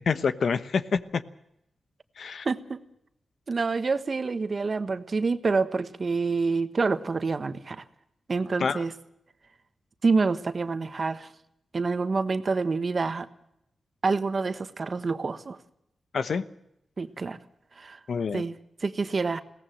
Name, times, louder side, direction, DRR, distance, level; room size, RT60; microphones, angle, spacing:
voice 1, 0.1-1.2 2.2-2.4 8.6-8.8 16.1-16.4 18.1-18.4, left 5 dB, 70° left, 13 dB, 1.1 m, -27 dB
voice 2, 2.4-2.8 3.5-7.8 8.3-8.9 10.0-11.3 11.7-13.3 14.0-15.6 17.0-17.4 17.8-18.0 18.3-18.6 18.8-19.4, right 4 dB, 45° right, 11 dB, 1.3 m, -27 dB
21.5 x 17.5 x 7.6 m, 0.79 s
cardioid pair, 80°, 0 cm